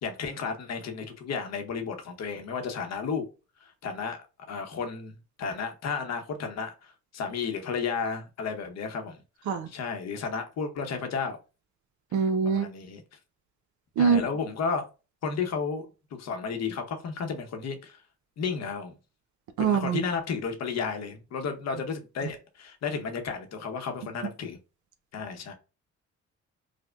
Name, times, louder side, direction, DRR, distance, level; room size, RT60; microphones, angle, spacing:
voice 1, 0.0-3.2 3.6-4.2 4.5-9.2 9.7-11.4 12.4-13.0 14.0-14.9 15.2-18.0 18.4-18.9 19.6-24.6 25.1-25.5, left 5 dB, 60° left, 0.8 m, -33 dB
voice 2, 12.1-12.7 14.0-14.2 19.6-20.0, right 6 dB, 75° right, 0.6 m, -23 dB
4.9 x 2.1 x 2.2 m
cardioid pair, 90°, 30 cm